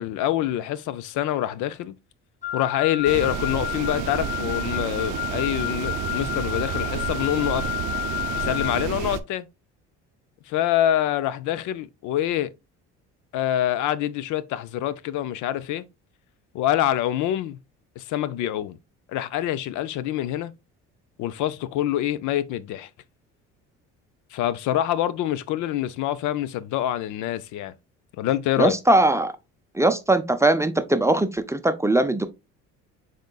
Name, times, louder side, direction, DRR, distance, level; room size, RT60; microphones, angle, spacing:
voice 1, 0.0-2.0 2.5-7.8 8.4-9.5 10.5-12.5 13.3-15.8 16.5-17.6 18.0-18.8 19.1-20.5 21.2-22.9 24.3-27.7 28.2-28.7, left 12 dB, 70° left, 0.5 m, -26 dB
Wind instrument woodwind instrument, 2.4-8.9, left 13 dB, 25° left, 1.7 m, -31 dB
sound 1, 3.0-9.2, right 11 dB, 70° right, 0.5 m, -30 dB
voice 2, 28.6-29.3 29.8-32.3, right 2 dB, 10° right, 0.5 m, -20 dB
6.4 x 3.7 x 2.2 m
supercardioid pair, 90°, 32 cm